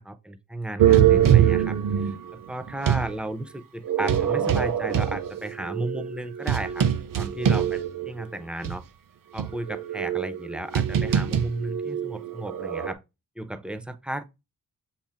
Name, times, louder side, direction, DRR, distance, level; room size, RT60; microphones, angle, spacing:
voice 1, 0.0-6.9 7.1-8.8 9.3-13.0 13.4-14.2, right 1 dB, 5° right, 0.7 m, -34 dB
sound 1, 0.8-3.1 3.9-8.2 8.6-8.7 9.4-12.9, right 10 dB, 75° right, 0.8 m, -23 dB
7.1 x 4.3 x 3.6 m
wide cardioid pair, 95°, 34 cm